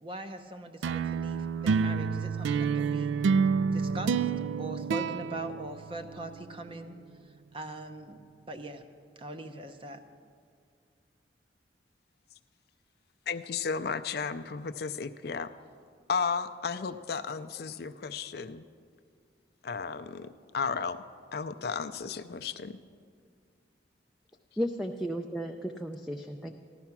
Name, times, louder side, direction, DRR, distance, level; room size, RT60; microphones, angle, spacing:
voice 1, 0.0-3.1 3.7-4.3 4.6-7.0 7.5-8.2 8.5-8.8 9.2-10.0, right 2 dB, 30° right, 7 dB, 0.7 m, -41 dB
sound 1, 0.8-6.4, right 5 dB, 80° right, 0.3 m, -28 dB
voice 2, 13.3-15.5 16.1-18.6 19.6-20.3 20.5-21.0 21.3-22.8, left 5 dB, 55° left, 11 dB, 0.4 m, -33 dB
voice 3, 24.6-26.5, equal, ahead, 4 dB, 0.4 m, -34 dB
14.5 x 12.0 x 5.9 m, 2.2 s
head